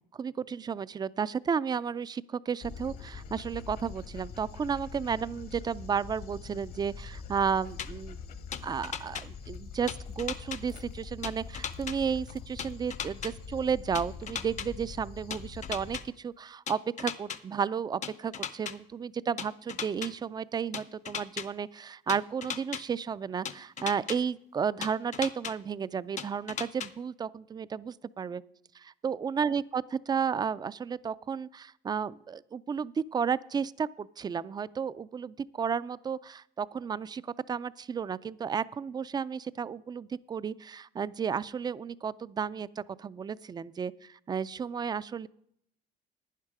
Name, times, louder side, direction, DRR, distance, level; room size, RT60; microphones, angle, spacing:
voice 1, 0.1-8.2 8.6-28.4 28.7-45.3, right 6 dB, 25° right, 18 dB, 0.3 m, -33 dB
Dog, 2.6-16.0, left 5 dB, 65° left, 1.2 m, -44 dB
sound 1, 7.8-7.9 8.5-9.2 9.9-10.6 11.2-11.9 12.6-13.3 13.9-14.7 15.3-16.0 16.7-17.4 18.0-18.7 19.4-20.1 20.7-21.4 22.1-22.8 23.4-24.2 24.8-25.5 26.2-26.9, left 7 dB, 45° left, 0.7 m, -36 dB
11.0 x 9.6 x 4.8 m, 0.74 s
cardioid pair, 110°, 17 cm